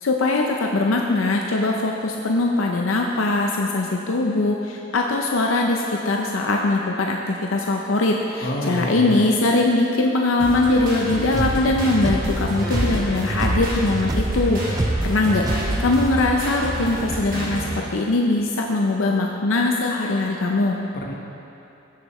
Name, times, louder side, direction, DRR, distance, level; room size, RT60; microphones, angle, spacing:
voice 1, 0.0-17.6 17.9-20.8, left 2 dB, 80° left, 1 dB, 0.6 m, -21 dB
voice 2, 8.4-9.2 20.9-21.1, equal, 50° left, -2 dB, 1.3 m, -27 dB
sound 1, 10.4-17.8, equal, 45° right, 1.7 m, -30 dB
sound 2, 11.3-16.4, right 2 dB, 20° right, 0.3 m, -26 dB
16.5 x 6.4 x 3.2 m, 2.8 s
head